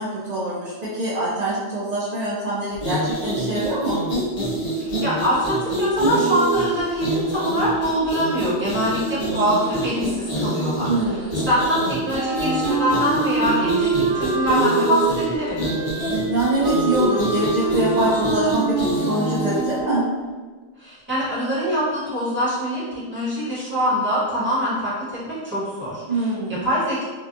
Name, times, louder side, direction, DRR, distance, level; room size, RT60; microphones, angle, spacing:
voice 1, 0.0-4.0 10.9-11.5 16.3-20.0 26.1-26.7, right 2 dB, 50° right, -8 dB, 0.5 m, -24 dB
sound 1, 2.7-19.8, right 1 dB, 45° left, 0.5 m, -25 dB
voice 2, 4.8-10.9 11.3-13.9 14.1-15.6 20.8-26.2 26.6-27.0, equal, 10° right, -11 dB, 1.1 m, -24 dB
Wind instrument woodwind instrument, 12.1-20.2, right 3 dB, 80° right, 0.8 m, -26 dB
2.7 x 2.3 x 2.5 m, 1.4 s
omnidirectional pair, 1.1 m